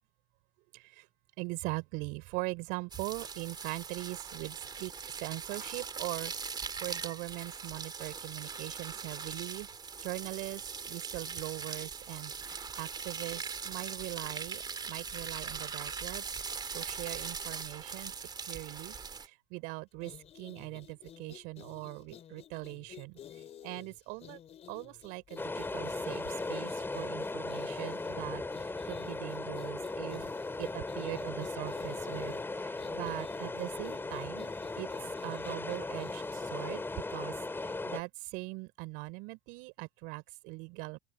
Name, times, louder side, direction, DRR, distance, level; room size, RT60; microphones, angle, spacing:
voice 1, 0.7-1.1 1.4-9.7 10.0-24.4 24.7-30.3 30.6-41.0, right 26 dB, 65° right, 4.5 m, -41 dB
sound 1, 2.9-19.3, right 5 dB, 25° right, 2.5 m, -41 dB
sound 2, 19.9-37.0, left 10 dB, 40° left, 3.7 m, -52 dB
Sea shore with medium wind, 25.4-38.0, left 3 dB, 15° left, 6.6 m, -38 dB
open air
hypercardioid pair, 80°, 16 cm